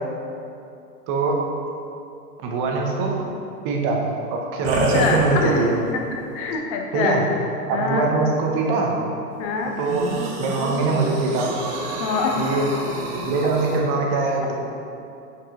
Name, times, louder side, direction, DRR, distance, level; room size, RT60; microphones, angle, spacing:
voice 1, 2.4-3.2 3.6-4.0 4.3-5.8 6.9-7.2 7.7-8.9 9.8-10.1 10.4-11.5 12.4-12.7 13.1-14.5, right 3 dB, 25° right, 0 dB, 0.8 m, -22 dB
sound 1, 4.6-5.9 6.5-6.6 9.8-13.8, right 1 dB, 50° right, 1.3 m, -28 dB
voice 2, 4.7-5.7 6.3-7.2 7.7-8.1 9.4-9.7 12.0-12.3, left 5 dB, 25° left, 1 dB, 0.4 m, -25 dB
7.0 x 5.0 x 3.8 m, 2.7 s
hypercardioid pair, 135°, 48 cm